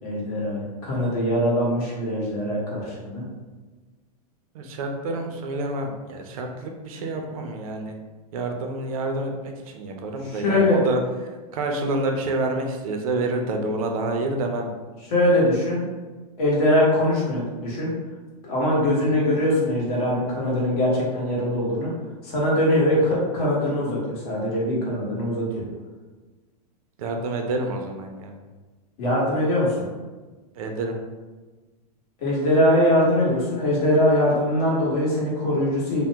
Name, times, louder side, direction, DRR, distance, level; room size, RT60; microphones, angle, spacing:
voice 1, 0.0-3.2 10.3-10.8 15.1-15.8 16.4-17.9 18.4-21.9 22.2-25.6 29.0-29.8 32.2-36.0, left 1 dB, 60° left, -5 dB, 1.4 m, -22 dB
voice 2, 4.5-8.0 8.3-11.0 11.5-14.7 19.0-19.2 22.9-23.0 27.0-28.3 30.5-31.0, right 2 dB, 60° right, 3 dB, 0.5 m, -28 dB
2.8 x 2.1 x 3.4 m, 1.3 s
supercardioid pair, 150°, 21 cm